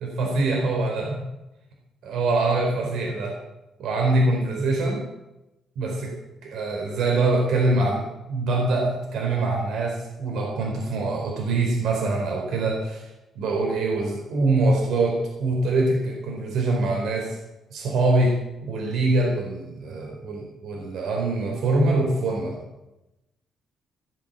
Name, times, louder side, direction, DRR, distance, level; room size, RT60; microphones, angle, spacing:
voice 1, 0.2-1.2 2.0-3.3 3.8-5.0 5.8-6.1 6.4-13.0 13.3-17.4 17.7-18.3 18.6-22.6, right 2 dB, 80° right, -1 dB, 4.6 m, -24 dB
17.5 x 8.9 x 7.6 m, 0.95 s
cardioid pair, 120°, 0 cm